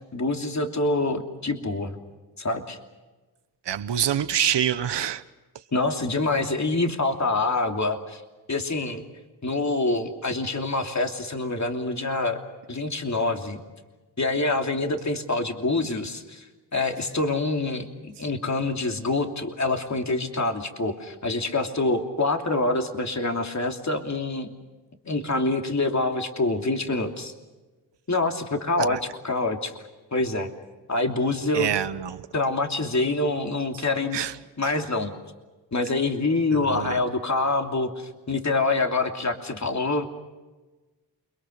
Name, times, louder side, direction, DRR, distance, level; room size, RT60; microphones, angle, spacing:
voice 1, 0.1-1.9 2.4-2.8 5.7-8.2 8.5-9.0 9.4-12.4 12.7-13.6 14.2-16.4 16.7-24.5 25.1-27.3 28.1-29.0 29.2-29.7 30.1-30.5 30.9-31.7 32.3-34.2 34.6-35.1 35.7-40.1, left 2 dB, 40° left, 3.0 m, -26 dB
voice 2, 3.6-5.2 28.8-29.0 31.5-32.3 33.7-33.8 34.1-34.4 34.6-34.7 36.5-37.0, right 9 dB, 90° right, 1.1 m, -26 dB
29.0 x 23.0 x 6.6 m
cardioid pair, 55°, 41 cm